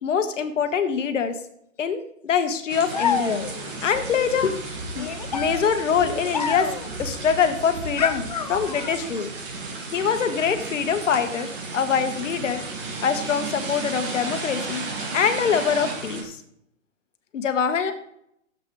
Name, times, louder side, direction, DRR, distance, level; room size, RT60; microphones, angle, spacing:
voice 1, 0.0-1.4 1.8-3.5 3.8-4.5 5.0-6.7 7.0-9.3 9.9-12.6 13.0-14.8 15.1-16.4 17.3-17.9, left 7 dB, 65° left, 9 dB, 1.3 m, -24 dB
sound 1, 2.7-16.2, right 3 dB, 40° right, 2.1 m, -34 dB
sound 2, 2.9-3.8 5.0-7.0 8.0-9.1, left 6 dB, 35° left, 0.4 m, -28 dB
13.0 x 7.6 x 3.1 m, 0.74 s
hypercardioid pair, 150°, 39 cm